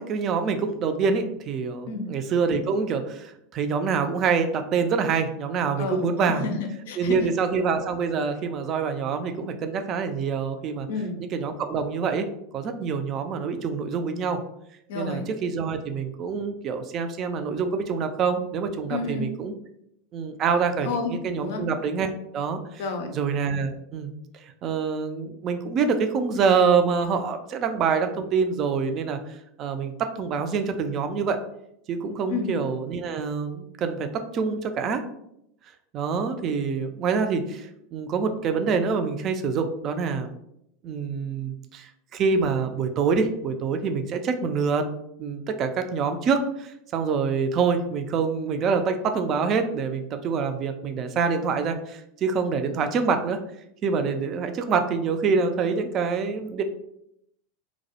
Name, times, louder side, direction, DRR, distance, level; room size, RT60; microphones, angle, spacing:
voice 1, 0.0-6.4 7.0-10.9 11.2-12.3 12.5-14.4 14.9-19.5 20.1-22.8 23.1-24.2 24.4-29.2 29.6-31.4 31.9-35.0 35.9-40.3 40.8-44.9 45.2-53.4 53.8-56.6, right 5 dB, 45° right, 7 dB, 0.3 m, -26 dB
voice 2, 5.8-7.3 10.9-11.2 14.9-15.2 18.9-19.3 20.8-21.1 21.4-21.6 22.8-23.1 32.3-32.5, left 4 dB, 70° left, 6 dB, 0.4 m, -30 dB
2.2 x 2.0 x 2.7 m, 0.77 s
hypercardioid pair, 90°, 0 cm